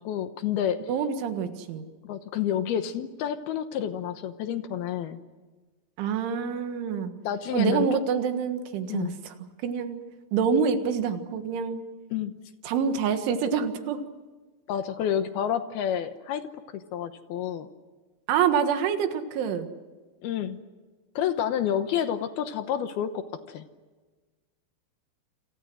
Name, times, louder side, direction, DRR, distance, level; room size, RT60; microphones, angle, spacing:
voice 1, 0.0-0.8 2.0-5.2 7.2-7.9 8.9-9.2 12.1-12.3 14.7-16.5 16.7-17.7 20.2-20.6 21.2-23.7, left 9 dB, 75° left, 9 dB, 2.5 m, -29 dB
voice 2, 0.9-1.9 6.0-7.1 7.5-9.1 9.6-10.0 10.3-11.8 12.7-14.0 18.3-19.7, right 6 dB, 85° right, 7 dB, 4.1 m, -26 dB
28.5 x 27.5 x 6.2 m, 1.3 s
omnidirectional pair, 5.3 m